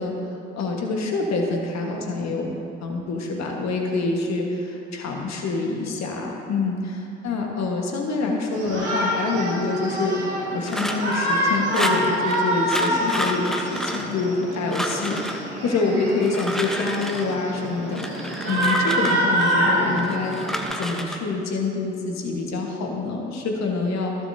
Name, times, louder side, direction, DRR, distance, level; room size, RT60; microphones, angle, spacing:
voice 1, 0.0-10.3 10.5-15.2 15.6-18.0 18.5-20.4 20.8-24.2, left 3 dB, 50° left, 1 dB, 1.6 m, -26 dB
Shout, 8.5-20.6, equal, 85° right, 2.1 m, -26 dB
sound 1, 10.7-11.2 11.7-12.4 12.7-14.4 14.7-15.4 16.1-17.4 17.9-19.6 20.0-21.2, equal, ahead, 1.0 m, -30 dB
15.0 x 7.1 x 2.8 m, 2.7 s
figure-of-eight pair, 50°, 34 cm